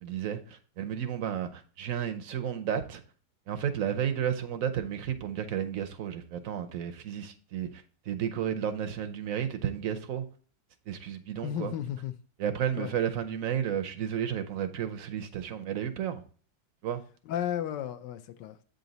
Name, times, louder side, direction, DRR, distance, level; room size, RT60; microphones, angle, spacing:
voice 1, 0.0-3.0 3.5-10.2 10.9-11.7 12.4-16.2 16.8-17.0, right 9 dB, 65° right, 0.8 m, -32 dB
voice 2, 11.4-12.1 12.8-12.9 17.3-18.6, left 10 dB, 75° left, 1.2 m, -33 dB
8.2 x 3.9 x 4.0 m
omnidirectional pair, 2.0 m